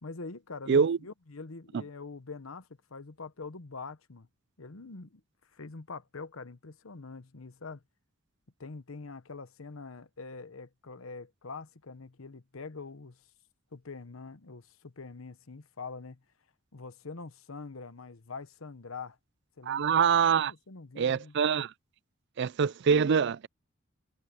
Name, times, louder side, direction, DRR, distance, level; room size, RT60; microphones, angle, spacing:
voice 1, 0.0-4.3 4.6-5.2 5.5-7.8 8.6-13.2 13.7-16.2 16.7-19.2 19.6-20.0 20.3-21.3, left 4 dB, 85° left, 1.1 m, -44 dB
voice 2, 0.7-1.0 19.7-20.5 21.0-21.7 22.4-23.5, right 6 dB, 60° right, 0.4 m, -24 dB
head